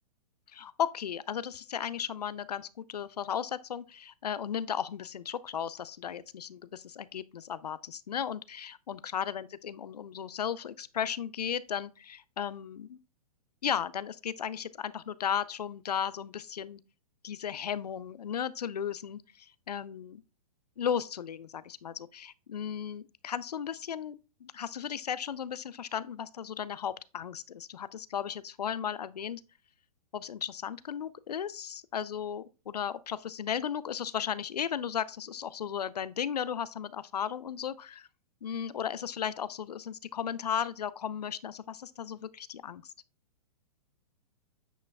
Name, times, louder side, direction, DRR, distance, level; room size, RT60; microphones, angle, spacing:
voice 1, 0.5-13.0 13.6-16.8 17.2-20.2 20.8-29.4 30.1-38.1 38.4-42.9, left 8 dB, 85° left, 0.5 m, -35 dB
8.7 x 5.1 x 2.2 m
hypercardioid pair, 120°, 20 cm